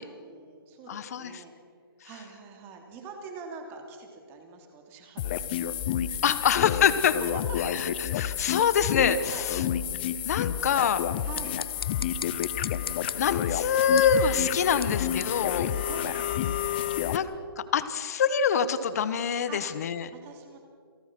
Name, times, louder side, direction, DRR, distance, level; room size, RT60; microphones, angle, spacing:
voice 1, 0.0-1.5 2.0-6.4 7.2-8.6 9.3-9.5 11.2-11.6 12.1-12.4 15.9-16.3 19.5-19.6 20.1-20.6, right 4 dB, 15° right, 3 dB, 2.8 m, -45 dB
voice 2, 0.9-1.4 6.2-7.2 7.7-7.9 8.2-9.6 10.2-11.0 13.1-15.7 17.1-17.3 17.6-20.1, left 7 dB, 40° left, 13 dB, 1.3 m, -25 dB
sound 1, 5.2-17.2, left 10 dB, 25° left, 0.7 m, -30 dB
sound 2, 11.1-16.4, left 6 dB, 75° left, 0.9 m, -42 dB
28.0 x 18.0 x 6.1 m, 2.2 s
hypercardioid pair, 165°, 13 cm